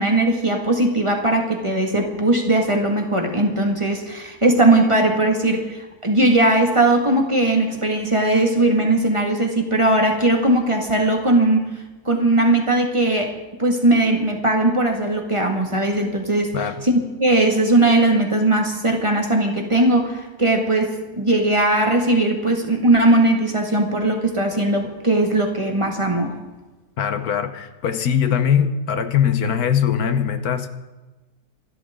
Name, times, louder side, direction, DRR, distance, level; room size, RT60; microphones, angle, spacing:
voice 1, 0.0-11.7 12.1-13.3 13.6-16.5 16.8-16.9 17.2-26.4, right 2 dB, 20° right, 2 dB, 2.0 m, -19 dB
voice 2, 27.0-30.7, left 8 dB, 75° left, 10 dB, 1.5 m, -21 dB
26.5 x 12.5 x 3.8 m, 1.1 s
omnidirectional pair, 1.6 m